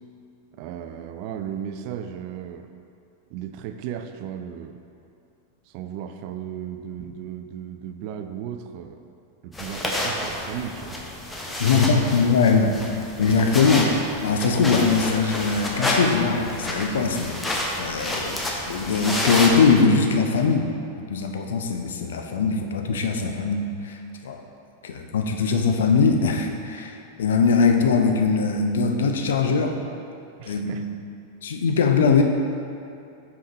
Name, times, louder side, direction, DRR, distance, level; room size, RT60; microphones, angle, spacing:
voice 1, 0.5-2.7 3.3-4.8 5.7-9.0 9.4-11.0 30.4-30.8, right 9 dB, 45° right, 8 dB, 0.3 m, -35 dB
sound 1, 9.5-19.8, left 1 dB, 10° left, 0.8 m, -29 dB
voice 2, 11.6-12.7 13.2-13.9 14.2-18.4 18.7-20.7 21.1-24.0 24.2-24.4 24.8-29.8 30.5-30.9 31.4-32.2, left 5 dB, 60° left, 4 dB, 0.5 m, -21 dB
5.6 x 4.9 x 4.0 m, 2.6 s
figure-of-eight pair, 90°, 0 cm